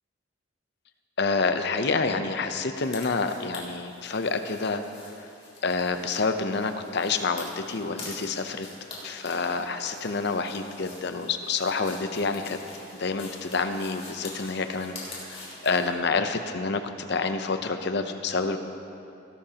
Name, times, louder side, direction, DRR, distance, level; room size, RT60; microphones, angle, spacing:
voice 1, 1.2-4.8 5.6-8.7 9.0-12.6 13.0-14.9 15.6-18.6, left 4 dB, 60° left, 8 dB, 0.7 m, -28 dB
sound 1, 2.8-16.0, left 2 dB, 30° left, 3.2 m, -45 dB
18.5 x 12.0 x 2.9 m, 2.6 s
head